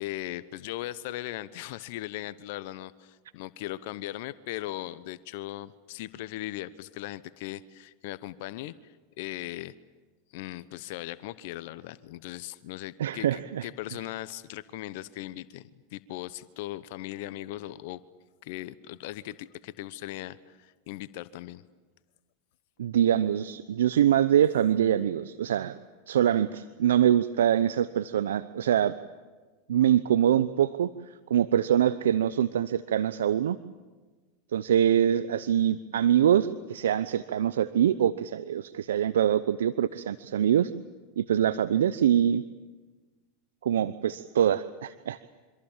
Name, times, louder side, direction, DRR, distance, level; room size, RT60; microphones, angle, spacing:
voice 1, 0.0-9.7 10.3-18.0 18.4-21.6, left 15 dB, 65° left, 15 dB, 0.9 m, -38 dB
voice 2, 13.0-13.7 22.8-25.8 26.1-28.9 29.7-30.9 31.3-33.6 34.5-40.7 41.2-42.4 43.6-45.2, right 10 dB, 80° right, 14 dB, 0.7 m, -24 dB
27.0 x 25.5 x 7.4 m, 1.3 s
hypercardioid pair, 95°, 0 cm